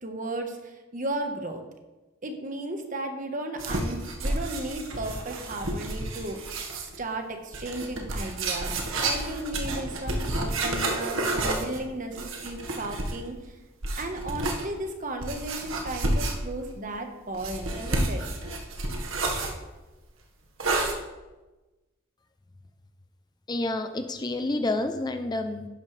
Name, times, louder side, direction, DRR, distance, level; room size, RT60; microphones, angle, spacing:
voice 1, 0.0-1.6 2.2-8.7 9.0-13.3 14.0-18.2, right 1 dB, 40° right, 5 dB, 1.2 m, -35 dB
sound 1, 3.6-7.0 7.5-13.3 13.8-14.7 15.2-16.7 17.3-19.6 20.6-20.9, right 2 dB, 90° right, 1.6 m, -30 dB
voice 2, 23.5-25.7, left 2 dB, 20° left, 7 dB, 0.5 m, -29 dB
11.5 x 10.5 x 3.3 m, 1.1 s
head